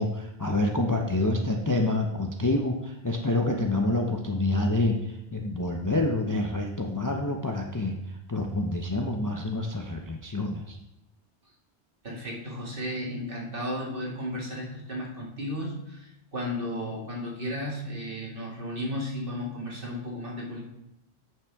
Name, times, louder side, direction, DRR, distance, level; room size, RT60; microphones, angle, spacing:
voice 1, 0.0-8.0 8.3-10.8, left 2 dB, 25° left, 2 dB, 0.5 m, -27 dB
voice 2, 12.0-20.6, equal, 55° right, -3 dB, 2.2 m, -34 dB
10.0 x 5.9 x 3.5 m, 0.92 s
omnidirectional pair, 1.1 m